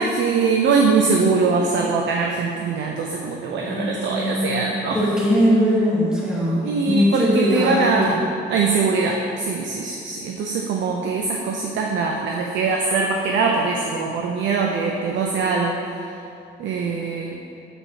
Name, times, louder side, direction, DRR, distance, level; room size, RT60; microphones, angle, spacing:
voice 1, 0.0-5.0 6.6-8.2 8.5-15.8 16.6-17.4, right 4 dB, 70° right, 0 dB, 0.5 m, -22 dB
voice 2, 3.6-8.2, equal, 5° right, -7 dB, 1.3 m, -21 dB
6.5 x 5.1 x 2.9 m, 2.7 s
cardioid pair, 90°, 20 cm